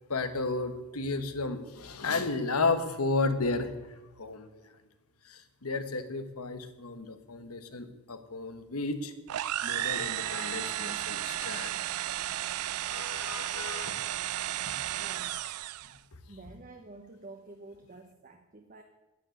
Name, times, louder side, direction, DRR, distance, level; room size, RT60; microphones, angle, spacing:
voice 1, 0.1-3.7 4.2-4.5 5.3-9.1 9.6-11.8 12.9-14.0 14.7-14.8, left 3 dB, 85° left, 9 dB, 1.3 m, -33 dB
sound 1, 9.3-16.0, right 13 dB, 85° right, 0.4 m, -33 dB
voice 2, 15.0-15.4 16.3-18.8, right 2 dB, 40° right, 5 dB, 0.9 m, -49 dB
10.0 x 9.7 x 9.1 m, 1.1 s
head